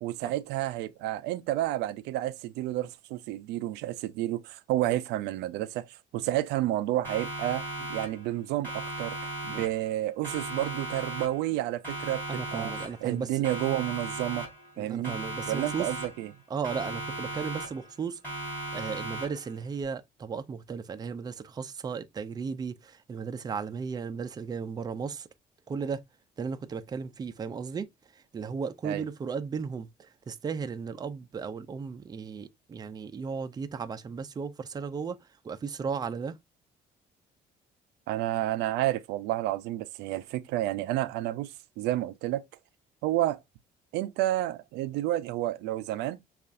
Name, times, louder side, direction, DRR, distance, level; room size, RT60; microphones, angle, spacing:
voice 1, 0.0-5.9 6.1-9.2 9.4-12.7 13.0-14.5 14.8-15.2 15.5-16.3 28.8-29.0 38.1-41.5 41.8-42.4 43.0-43.4 43.9-46.2, right 14 dB, 90° right, 0.4 m, -30 dB
Siren, 7.0-8.4 8.6-10.0 10.2-11.6 11.8-13.2 13.4-14.8 15.0-16.4 16.6-18.0 18.2-19.6, right 1 dB, 10° left, 2.9 m, -37 dB
voice 2, 12.3-13.5 14.8-15.9 16.5-18.2 18.7-25.3 25.7-26.0 26.4-27.9 28.1-36.4, right 5 dB, 25° right, 0.4 m, -35 dB
6.5 x 2.4 x 2.4 m
cardioid pair, 110°, 17 cm